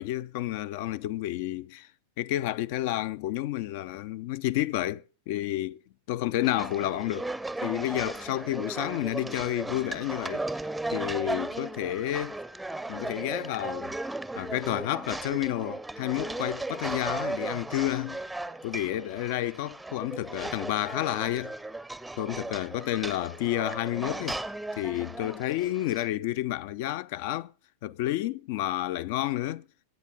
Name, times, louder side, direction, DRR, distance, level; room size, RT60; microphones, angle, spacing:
voice 1, 0.0-1.9 2.2-5.8 6.1-7.3 7.6-10.4 10.9-12.4 12.9-13.9 14.4-18.2 18.6-21.5 22.2-24.4 24.8-27.5 27.8-29.6, left 14 dB, 50° left, 0.6 m, -30 dB
sound 1, 6.4-26.1, right 2 dB, 5° right, 0.7 m, -36 dB
23.5 x 8.9 x 3.7 m
figure-of-eight pair, 90°, 0 cm